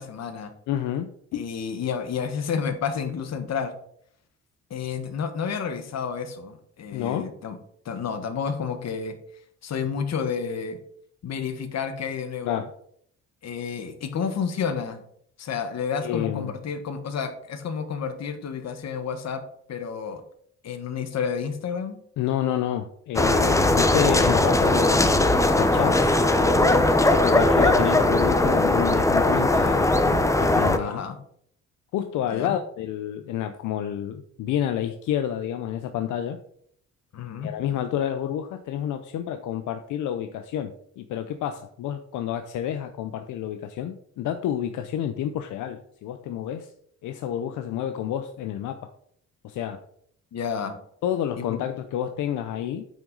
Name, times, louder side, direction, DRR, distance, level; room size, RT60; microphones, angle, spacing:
voice 1, 0.0-0.5 1.3-3.7 4.7-7.6 7.8-9.1 9.6-10.8 11.2-12.6 13.4-15.0 15.4-19.4 19.7-20.2 20.6-22.0 30.8-31.2 32.2-32.6 37.1-37.5 50.3-50.8 51.4-51.6, left 6 dB, 60° left, 9 dB, 1.4 m, -30 dB
voice 2, 0.7-1.4 6.9-7.3 12.4-12.7 16.0-16.5 22.2-31.0 31.9-36.4 37.4-46.7 47.0-48.9 49.4-49.8 51.0-52.9, left 10 dB, 80° left, 8 dB, 0.7 m, -29 dB
sound 1, 23.2-30.8, left 2 dB, 10° left, 0.8 m, -19 dB
8.8 x 6.2 x 3.9 m, 0.66 s
cardioid pair, 90°, 30 cm